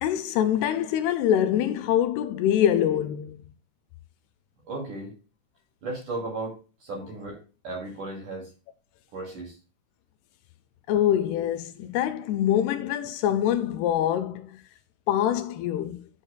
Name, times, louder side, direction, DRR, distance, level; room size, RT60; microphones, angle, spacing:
voice 1, 0.0-3.4 10.9-14.5 15.1-16.0, left 10 dB, 80° left, 2.4 m, -24 dB
voice 2, 4.7-5.1 5.8-8.5 9.1-9.6, right 2 dB, 50° right, 3.6 m, -35 dB
11.0 x 6.6 x 2.2 m
omnidirectional pair, 5.0 m